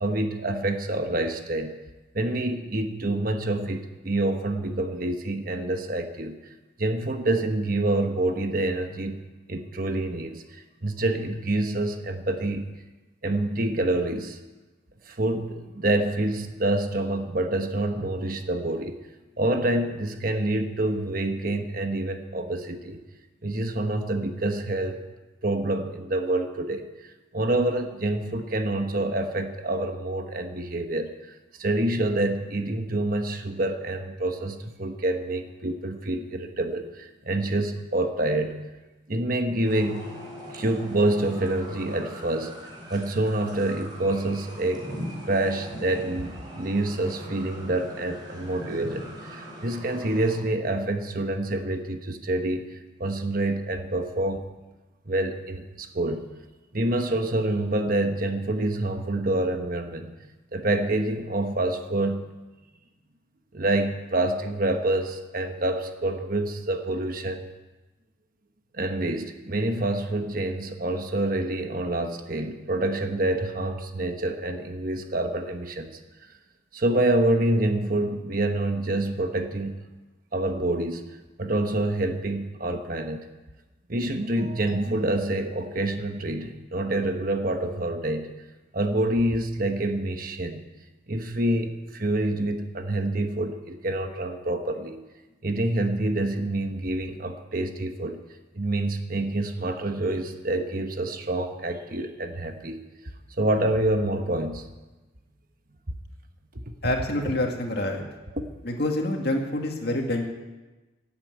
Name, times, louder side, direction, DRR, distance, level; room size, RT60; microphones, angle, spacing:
voice 1, 0.0-1.7 2.1-6.4 6.8-9.2 9.5-12.7 13.2-14.4 15.1-19.0 19.4-23.0 23.4-25.0 25.4-26.9 27.3-38.6 39.1-40.2 40.5-42.5 42.9-44.8 45.3-52.6 53.0-54.4 55.1-56.3 56.7-60.1 60.5-62.3 63.5-67.4 68.7-76.0 76.7-79.8 80.3-83.2 83.9-88.3 88.7-90.6 91.1-95.0 95.4-98.2 98.5-102.8 103.4-104.6 108.3-108.5, right 1 dB, 45° right, 6 dB, 1.2 m, -27 dB
sound 1, 39.6-50.4, equal, 20° right, 3.9 m, -40 dB
voice 2, 106.8-108.0 108.6-110.3, left 1 dB, 50° left, 2 dB, 2.1 m, -27 dB
16.0 x 8.4 x 9.2 m, 1.1 s
head